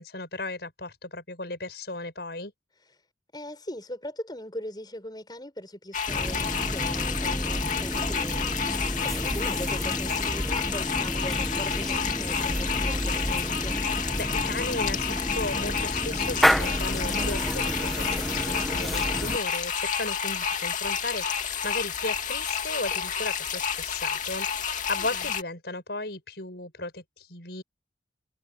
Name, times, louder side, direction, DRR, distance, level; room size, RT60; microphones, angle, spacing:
voice 1, 0.0-2.5 14.2-27.6, left 2 dB, 60° left, 7.9 m, -35 dB
voice 2, 3.3-13.8 24.9-25.3, left 1 dB, 20° left, 6.9 m, -40 dB
sound 1, 5.9-25.4, left 7 dB, 45° left, 2.5 m, -30 dB
sound 2, 6.1-19.4, equal, ahead, 1.1 m, -30 dB
head